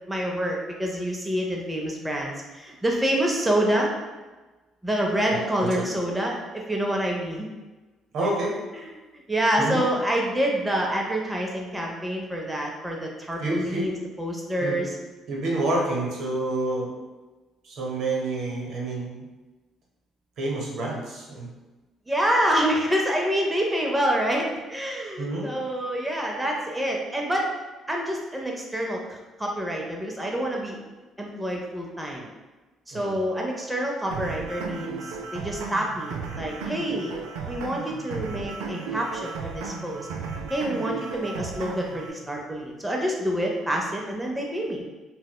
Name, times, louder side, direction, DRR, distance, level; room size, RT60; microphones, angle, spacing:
voice 1, 0.1-3.9 4.8-7.5 8.2-8.3 8.7-8.9 9.3-14.9 22.1-27.5 27.9-30.8 31.2-32.3 32.9-37.2 37.5-40.1 40.5-44.8, right 1 dB, 10° right, -1 dB, 0.5 m, -27 dB
voice 2, 5.3-5.8 8.1-8.5 9.6-9.8 13.4-13.9 14.6-14.9 15.3-16.9 17.6-19.2 20.4-21.5 25.2-25.5 32.9-33.1, right 2 dB, 65° right, -2 dB, 0.8 m, -28 dB
sound 1, 34.1-42.1, right 5 dB, 85° right, 0.3 m, -34 dB
4.0 x 2.1 x 2.2 m, 1.2 s
supercardioid pair, 65°, 0 cm